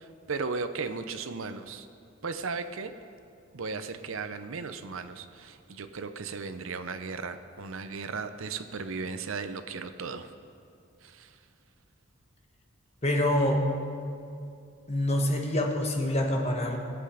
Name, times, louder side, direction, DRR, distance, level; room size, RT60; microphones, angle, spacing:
voice 1, 0.0-1.9 2.2-2.9 3.5-10.3 11.0-11.3, right 4 dB, 70° right, 10 dB, 0.6 m, -36 dB
voice 2, 13.0-13.6 14.9-16.8, left 1 dB, 30° left, 1 dB, 1.2 m, -26 dB
19.0 x 8.0 x 5.0 m, 2.5 s
head